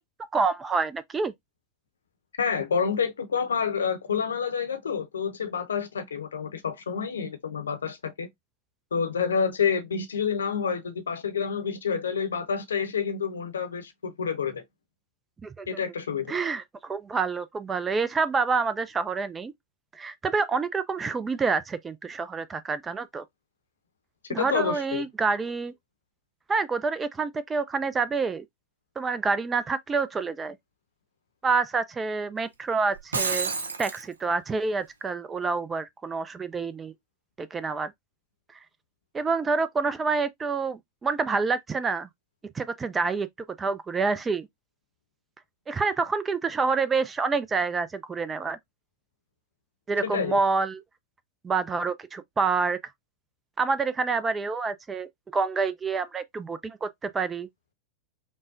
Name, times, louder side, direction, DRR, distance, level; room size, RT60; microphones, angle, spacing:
voice 1, 0.3-1.3 15.4-15.7 16.3-19.5 19.9-23.2 24.3-25.7 26.5-28.5 29.0-30.6 31.4-33.5 33.8-36.9 37.4-37.9 39.1-42.1 42.5-43.3 43.6-44.5 45.7-48.6 49.9-50.8 51.4-52.8 53.6-57.5, right 4 dB, 15° right, 0.4 m, -27 dB
voice 2, 2.4-8.3 8.9-14.6 15.7-16.4 24.3-25.0 50.0-50.4, left 6 dB, 70° left, 0.7 m, -28 dB
Shatter, 32.9-34.0, right 4 dB, 70° right, 0.5 m, -29 dB
5.3 x 2.1 x 2.4 m
figure-of-eight pair, 90°, 0 cm